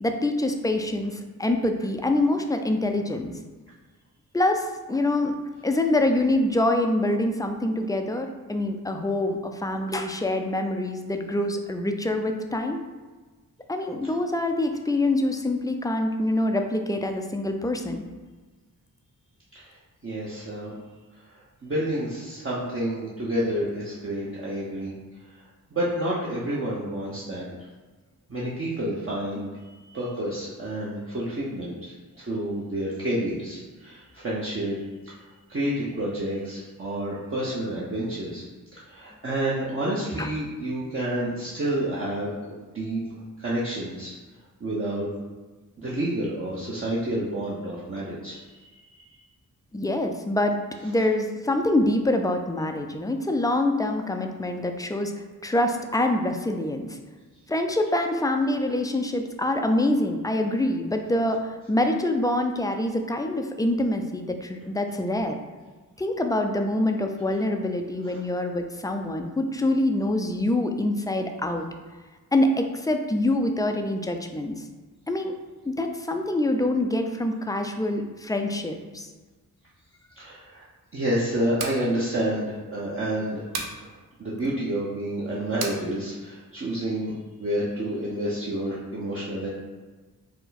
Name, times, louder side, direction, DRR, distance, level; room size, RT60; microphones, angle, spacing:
voice 1, 0.0-3.3 4.3-5.3 5.6-12.8 13.7-18.0 27.5-27.6 40.2-40.3 49.7-50.6 50.8-55.1 55.4-57.0 57.5-65.4 66.0-71.6 72.3-74.6 75.1-75.4 75.7-79.1, left 1 dB, 10° left, 4 dB, 0.4 m, -25 dB
voice 2, 20.0-20.7 21.3-24.9 25.7-27.5 28.3-29.5 29.9-34.8 35.1-35.2 35.5-38.4 38.9-43.0 43.4-44.1 44.6-45.1 45.8-49.2 68.0-68.2 80.2-80.7 80.9-83.5 83.8-83.9 84.2-87.1 87.4-89.5, right 1 dB, 35° right, -7 dB, 0.8 m, -29 dB
sound 1, 81.5-81.8 83.5-83.8 85.6-85.8, right 4 dB, 80° right, 0.6 m, -32 dB
4.6 x 2.1 x 4.0 m, 1.3 s
cardioid pair, 75°, 36 cm